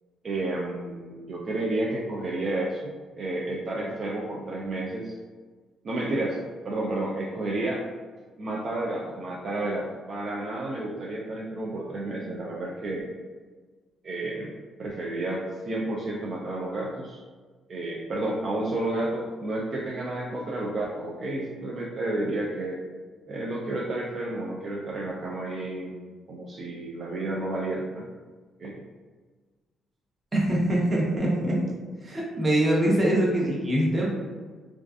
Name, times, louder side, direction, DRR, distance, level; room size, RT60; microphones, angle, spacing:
voice 1, 0.2-2.9 3.2-5.2 5.8-7.8 8.4-13.1 14.0-17.2 17.7-22.8 23.3-26.0 26.3-28.1 28.6-28.8, right 2 dB, 50° right, -3 dB, 0.3 m, -31 dB
voice 2, 30.3-31.6 32.0-34.1, right 1 dB, 25° right, -4 dB, 0.8 m, -23 dB
2.4 x 2.4 x 2.3 m, 1.4 s
cardioid pair, 90°, 0 cm